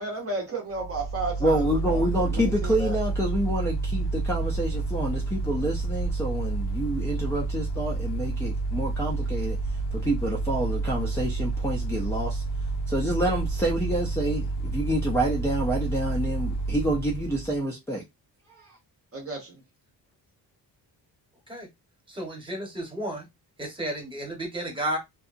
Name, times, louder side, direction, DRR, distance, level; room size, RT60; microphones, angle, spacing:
voice 1, 0.0-3.0 19.1-19.6, right 3 dB, 35° right, 0.6 m, -33 dB
Mechanical fan, 0.7-17.6, right 3 dB, 75° left, 0.6 m, -29 dB
voice 2, 1.4-9.6 9.9-12.4 12.9-18.0 18.6-18.8, right 1 dB, 5° left, 0.3 m, -28 dB
voice 3, 22.1-23.2 23.6-25.0, right 1 dB, 10° right, 1.0 m, -32 dB
2.7 x 2.3 x 2.4 m
wide cardioid pair, 175°, 41 cm